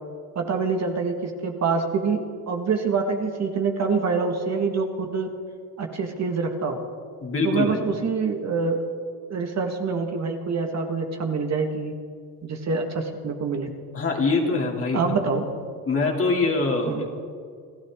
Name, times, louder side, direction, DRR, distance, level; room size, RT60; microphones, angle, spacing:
voice 1, 0.4-5.3 5.8-6.8 7.4-8.8 9.3-11.9 12.4-13.7 14.9-15.4 16.8-17.1, right 4 dB, 35° right, 3 dB, 1.7 m, -26 dB
voice 2, 7.2-7.8 13.9-15.2 15.9-17.1, left 3 dB, 30° left, 0 dB, 2.9 m, -24 dB
29.5 x 12.5 x 3.7 m, 2.1 s
cardioid pair, 110°, 44 cm